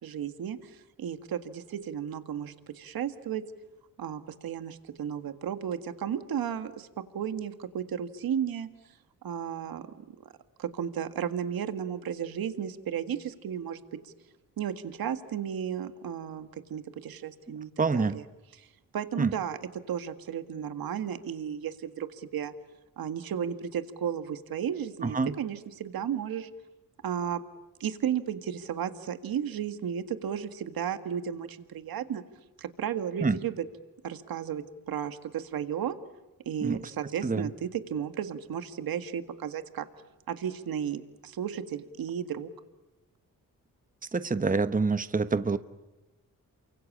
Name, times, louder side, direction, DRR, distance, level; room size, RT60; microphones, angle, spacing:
voice 1, 0.0-3.4 4.0-6.9 7.1-8.7 9.2-10.3 10.6-14.1 14.6-18.2 18.6-18.7 18.9-19.6 19.9-22.5 23.0-26.5 27.0-27.4 27.8-32.2 32.6-33.6 34.0-36.0 36.5-39.9 40.3-42.5, right 8 dB, 85° right, 10 dB, 1.9 m, -34 dB
voice 2, 17.8-18.2 19.2-19.3 25.0-25.3 33.2-33.4 36.6-36.8 37.2-37.5 44.1-45.6, right 4 dB, 25° right, 12 dB, 1.2 m, -26 dB
28.5 x 24.5 x 8.6 m, 1.0 s
cardioid pair, 70°, 35 cm